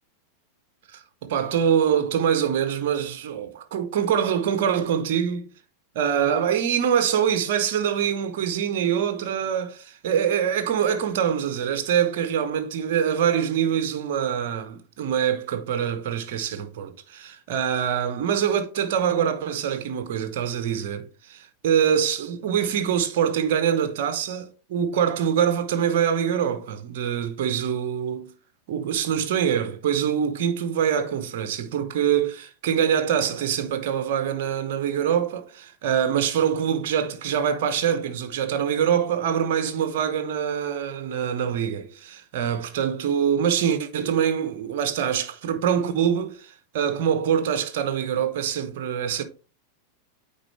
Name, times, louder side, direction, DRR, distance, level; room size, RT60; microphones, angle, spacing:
voice 1, 0.9-5.5 5.9-28.3 28.7-49.2, right 8 dB, 50° right, 0.9 m, -24 dB
9.0 x 4.0 x 3.2 m
figure-of-eight pair, 90°, 0 cm